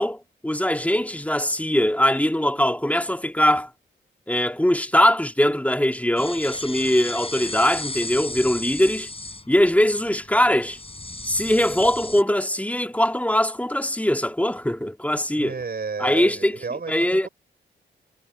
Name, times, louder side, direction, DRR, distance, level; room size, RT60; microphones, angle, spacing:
voice 1, 0.0-3.7 4.3-9.1 9.5-10.8 11.2-15.5 16.0-16.6 16.9-17.3, left 1 dB, 5° left, 1.8 m, -21 dB
sound 1, 6.2-12.2, left 2 dB, 25° left, 7.3 m, -35 dB
voice 2, 15.4-17.3, right 5 dB, 50° right, 5.3 m, -32 dB
supercardioid pair, 50°, 21 cm